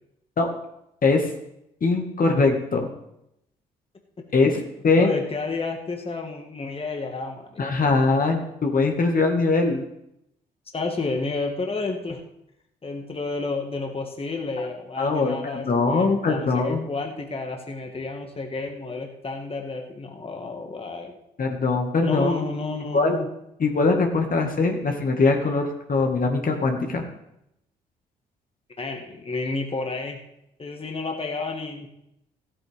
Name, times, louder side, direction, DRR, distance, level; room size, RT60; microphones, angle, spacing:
voice 1, 1.0-1.3 1.8-2.9 4.3-4.6 4.8-5.1 7.6-9.8 15.0-16.8 21.4-22.4 22.9-23.2 23.6-27.0, left 3 dB, 45° left, 2 dB, 1.8 m, -21 dB
voice 2, 5.0-7.7 10.7-12.2 12.8-21.1 22.0-23.3 28.8-30.2 30.6-31.9, left 3 dB, 30° left, 3 dB, 1.8 m, -31 dB
15.0 x 8.8 x 3.6 m, 0.81 s
hypercardioid pair, 45°, 20 cm